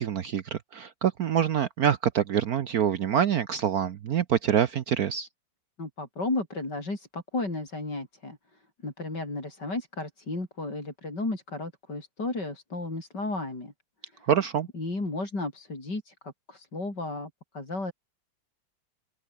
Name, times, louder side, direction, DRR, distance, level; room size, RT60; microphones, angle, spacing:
voice 1, 0.0-5.3 14.3-14.7, right 9 dB, 60° right, 1.2 m, -26 dB
voice 2, 5.8-8.4 8.8-13.7 14.1-14.3 14.7-17.9, left 2 dB, 60° left, 6.9 m, -34 dB
open air
omnidirectional pair, 2.0 m